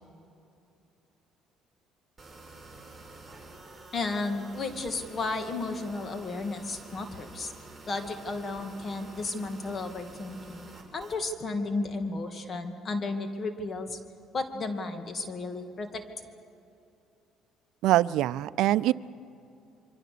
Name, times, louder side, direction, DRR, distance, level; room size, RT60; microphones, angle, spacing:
sound 1, 2.2-11.2, right 2 dB, 10° right, 4.7 m, -49 dB
voice 1, 3.9-7.5 7.9-14.0 14.3-16.0, left 3 dB, 35° left, 7 dB, 2.3 m, -33 dB
voice 2, 17.8-18.9, right 15 dB, 75° right, 18 dB, 0.5 m, -23 dB
26.5 x 24.0 x 6.9 m, 2.6 s
cardioid pair, 100°, 0 cm